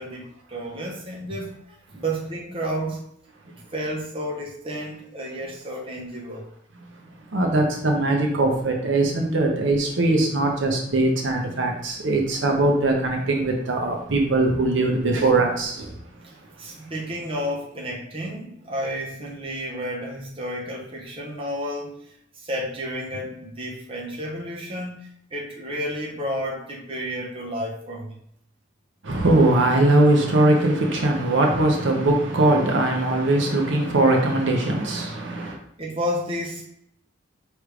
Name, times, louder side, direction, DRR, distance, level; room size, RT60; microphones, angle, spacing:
voice 1, 0.0-3.0 3.7-6.4 12.3-12.4 16.2-28.2 35.8-36.7, equal, 25° right, -3 dB, 0.8 m, -31 dB
voice 2, 7.3-15.9 29.0-35.6, right 2 dB, 60° right, 1 dB, 0.8 m, -21 dB
5.0 x 3.2 x 3.2 m, 0.72 s
head